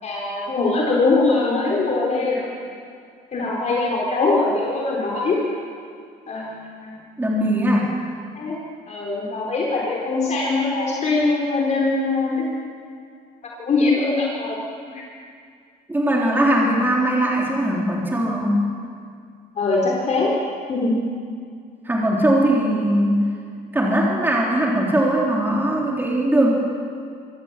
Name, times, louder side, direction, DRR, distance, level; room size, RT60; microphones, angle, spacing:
voice 1, 0.0-2.4 3.3-5.4 6.3-7.0 8.3-8.6 8.9-12.4 13.6-14.6 14.9-15.0 19.6-20.3 20.7-21.0, left 3 dB, 45° left, -3 dB, 4.2 m, -22 dB
voice 2, 7.2-7.9 15.9-18.6 21.8-23.2 23.7-26.5, right 1 dB, 10° right, -3 dB, 3.6 m, -20 dB
25.0 x 16.0 x 7.5 m, 2.2 s
cardioid pair, 110°, 17 cm